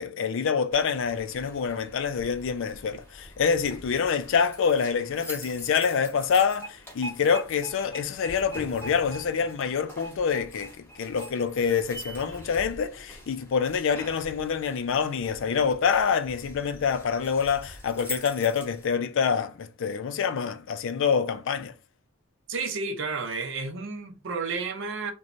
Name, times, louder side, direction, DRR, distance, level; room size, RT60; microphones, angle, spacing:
voice 1, 0.0-10.7 11.0-21.7, left 6 dB, 65° left, 0.4 m, -26 dB
sound 1, 0.7-18.9, equal, 10° left, 0.9 m, -44 dB
voice 2, 22.5-25.1, right 4 dB, 65° right, 0.6 m, -31 dB
2.9 x 2.2 x 2.5 m
head